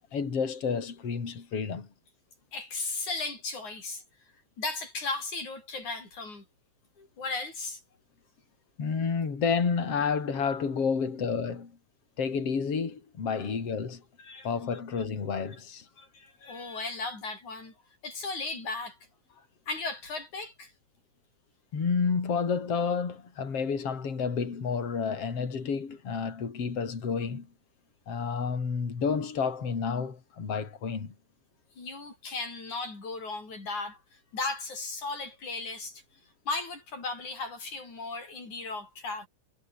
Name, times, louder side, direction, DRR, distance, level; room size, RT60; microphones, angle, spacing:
voice 1, 0.1-1.9 8.8-11.7 12.2-14.0 14.4-15.9 21.7-27.5 28.1-31.1, left 5 dB, 55° left, 4.6 m, -30 dB
voice 2, 2.5-4.0 4.6-6.5 7.0-7.8 14.2-14.8 16.0-17.7 18.0-19.0 19.7-20.7 31.8-36.0 36.5-39.3, left 3 dB, 85° left, 9.5 m, -36 dB
omnidirectional pair, 3.3 m